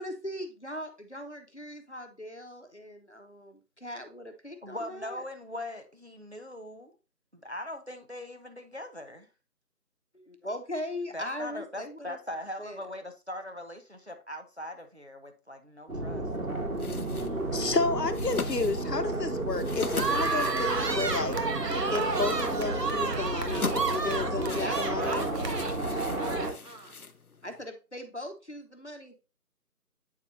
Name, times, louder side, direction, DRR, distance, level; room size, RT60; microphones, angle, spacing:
voice 1, 0.0-5.2 10.1-12.2 12.6-12.9 24.6-26.6 27.4-29.2, left 1 dB, 45° left, 1.0 m, -40 dB
voice 2, 4.6-6.9 7.3-9.3 11.1-16.3, left 1 dB, 45° right, 0.7 m, -40 dB
sound 1, 15.9-26.5, right 2 dB, 60° right, 1.5 m, -32 dB
sound 2, 16.7-27.7, left 4 dB, 65° left, 0.7 m, -41 dB
voice 3, 17.5-21.3 21.9-25.3, left 3 dB, 85° left, 1.1 m, -31 dB
sound 3, 19.9-26.9, right 4 dB, 85° right, 1.0 m, -32 dB
8.3 x 4.7 x 2.6 m
figure-of-eight pair, 180°, 48 cm